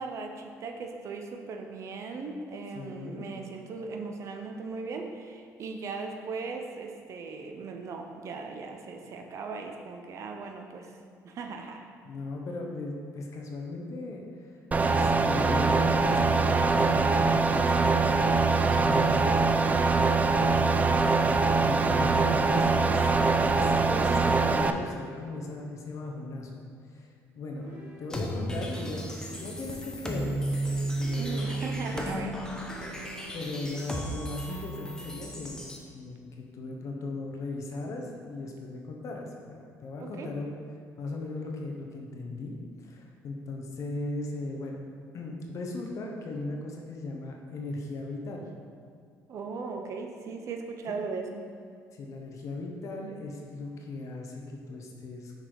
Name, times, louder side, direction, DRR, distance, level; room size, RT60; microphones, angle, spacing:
voice 1, 0.0-11.0 11.2-11.9 31.2-32.4 40.0-40.3 49.3-51.4, right 4 dB, 55° right, 4 dB, 0.7 m, -38 dB
voice 2, 2.7-3.3 12.0-14.2 14.9-18.1 18.4-19.6 20.4-23.1 23.4-26.6 26.9-31.6 31.9-32.1 32.7-32.9 33.3-40.6 41.0-44.8 45.1-48.5 50.9-51.0 51.9-55.3, left 2 dB, 55° left, 1 dB, 1.0 m, -37 dB
sound 1, 14.7-24.7, right 4 dB, 25° right, 0.4 m, -23 dB
sound 2, 24.5-25.5 27.6-28.6 29.1-30.1 31.0-32.0 32.6-33.6, equal, 85° right, 1.2 m, -49 dB
sound 3, 28.1-35.8, right 1 dB, 10° left, 0.8 m, -34 dB
6.3 x 4.2 x 4.7 m, 2.2 s
cardioid pair, 100°, 6 cm